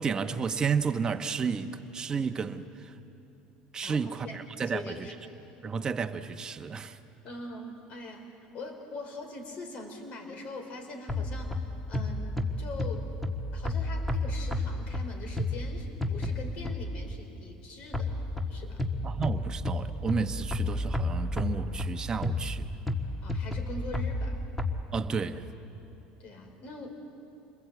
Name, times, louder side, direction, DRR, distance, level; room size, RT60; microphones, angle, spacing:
voice 1, 0.0-2.9 3.7-5.0 5.6-7.0 19.0-22.7 24.9-25.5, right 5 dB, 25° right, 7 dB, 1.1 m, -32 dB
voice 2, 3.8-4.4 4.7-5.1 7.2-13.1 13.5-18.2 18.5-18.8 23.2-24.4 26.2-26.9, left 2 dB, 50° left, 4 dB, 4.4 m, -42 dB
sound 1, 11.1-17.1 17.9-24.8, left 2 dB, 5° left, 1.5 m, -32 dB
28.0 x 21.0 x 8.1 m, 2.9 s
supercardioid pair, 120°, 3 cm